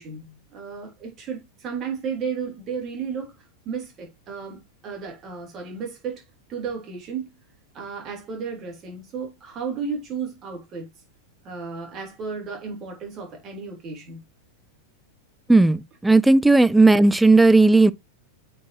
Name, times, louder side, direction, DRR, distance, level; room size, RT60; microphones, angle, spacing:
voice 1, 0.0-6.2 6.5-7.3 7.7-10.9 11.4-14.2, right 6 dB, 30° right, 3.4 m, -33 dB
voice 2, 15.5-17.9, right 3 dB, 5° right, 0.4 m, -15 dB
8.4 x 4.7 x 2.8 m
figure-of-eight pair, 90°, 0 cm